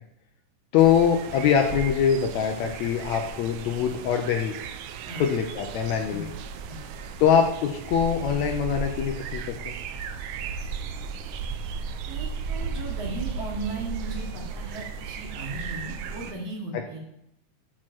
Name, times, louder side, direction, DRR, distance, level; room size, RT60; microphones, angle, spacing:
voice 1, 0.7-4.6 5.1-6.3 7.2-9.7, left 8 dB, 75° left, 4 dB, 1.7 m, -23 dB
sound 1, 0.8-16.3, right 5 dB, 80° right, 1.7 m, -35 dB
voice 2, 12.1-17.0, right 2 dB, 55° right, -1 dB, 2.6 m, -36 dB
7.5 x 6.4 x 4.4 m, 0.80 s
omnidirectional pair, 3.6 m